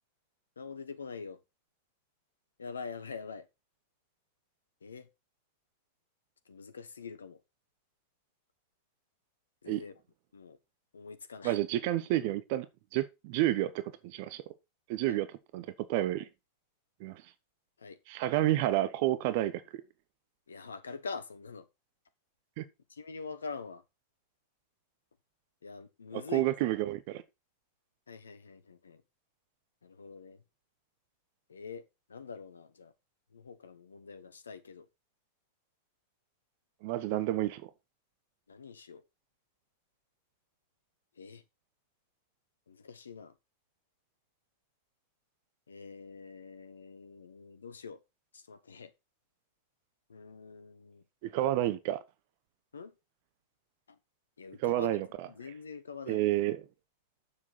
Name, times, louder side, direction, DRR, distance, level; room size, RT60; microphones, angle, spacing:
voice 1, 0.6-1.4 2.6-3.5 4.8-5.1 6.5-7.4 9.6-9.9 10.3-10.6 10.9-11.6 15.1-15.2 17.8-18.0 20.5-21.6 22.9-23.8 25.6-26.4 28.1-29.0 29.8-30.4 31.5-32.9 33.3-34.9 38.5-39.0 41.2-41.4 42.7-43.3 45.7-48.0 48.3-48.9 50.1-51.0 52.7-52.9 53.9-54.0 54.4-55.0 55.2-56.2, left 5 dB, 70° left, 1.2 m, -45 dB
voice 2, 11.4-12.7 12.9-14.4 14.9-15.3 15.5-16.3 17.0-17.2 18.1-19.8 22.6-22.7 26.3-27.2 36.8-37.7 51.2-52.0 54.6-55.3 56.1-56.6, right 14 dB, 45° right, 0.9 m, -30 dB
9.9 x 7.4 x 4.3 m
figure-of-eight pair, 90°, 0 cm